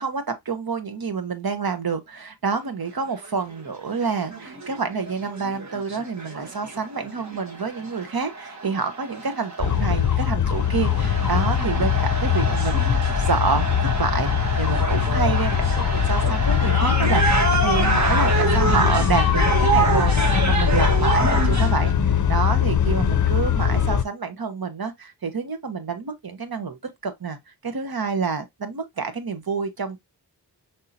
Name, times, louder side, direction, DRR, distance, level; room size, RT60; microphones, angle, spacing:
voice 1, 0.0-13.7 14.0-17.3 17.6-26.8 27.0-27.4 27.6-30.0, right 5 dB, 60° right, 1.1 m, -28 dB
sound 1, 3.2-3.3 3.6-3.7 4.0-21.9, right 3 dB, 40° right, 1.4 m, -27 dB
sound 2, 9.6-24.0, left 8 dB, 45° left, 0.6 m, -21 dB
5.5 x 3.6 x 2.6 m
wide cardioid pair, 60°, 41 cm